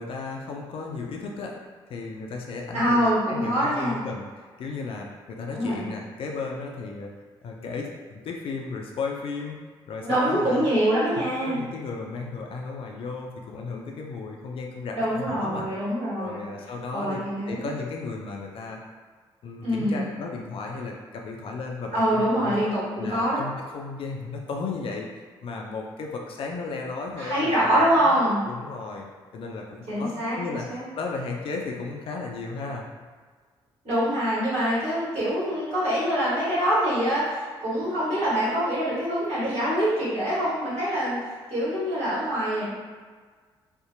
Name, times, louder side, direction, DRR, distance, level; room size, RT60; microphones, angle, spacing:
voice 1, 0.0-1.6 1.9-7.1 7.4-9.6 9.9-10.7 11.4-15.7 16.2-18.8 19.4-22.6 23.0-28.2 28.5-29.1 29.3-32.8, left 4 dB, 45° left, 1 dB, 0.4 m, -35 dB
voice 2, 2.7-4.0 5.5-5.9 10.0-11.6 14.9-16.4 16.9-17.6 19.6-20.1 21.9-23.4 27.2-28.4 29.9-30.8 33.8-41.2 41.5-42.7, equal, 55° right, -10 dB, 1.4 m, -25 dB
2.6 x 2.0 x 2.5 m, 1.5 s
figure-of-eight pair, 40°, 13 cm